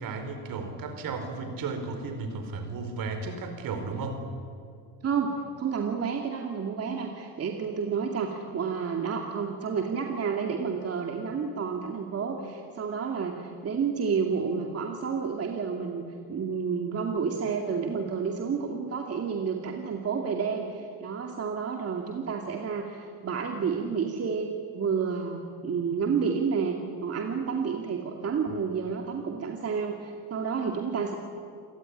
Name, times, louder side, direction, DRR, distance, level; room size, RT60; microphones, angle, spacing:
voice 1, 0.0-4.2, right 4 dB, 60° right, 7 dB, 4.7 m, -34 dB
voice 2, 5.0-16.0 16.3-24.5 24.7-31.1, right 6 dB, 40° right, 2 dB, 2.5 m, -30 dB
28.0 x 17.5 x 10.0 m, 2.4 s
cardioid pair, 120°, 39 cm